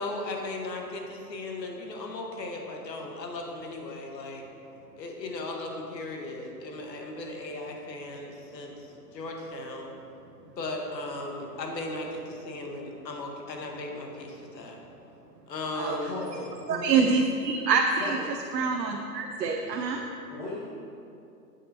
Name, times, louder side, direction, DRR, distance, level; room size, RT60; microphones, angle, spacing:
voice 1, 0.0-4.4 5.0-9.9 10.4-14.8 15.5-16.2, left 2 dB, 80° left, 1 dB, 1.5 m, -37 dB
voice 2, 16.1-16.8 18.0-18.3 20.3-20.6, left 2 dB, 40° left, -9 dB, 1.7 m, -37 dB
voice 3, 16.7-18.2 18.5-20.0, right 5 dB, 75° right, 2 dB, 0.8 m, -25 dB
9.4 x 7.3 x 2.8 m, 2.7 s
hypercardioid pair, 150°, 50 cm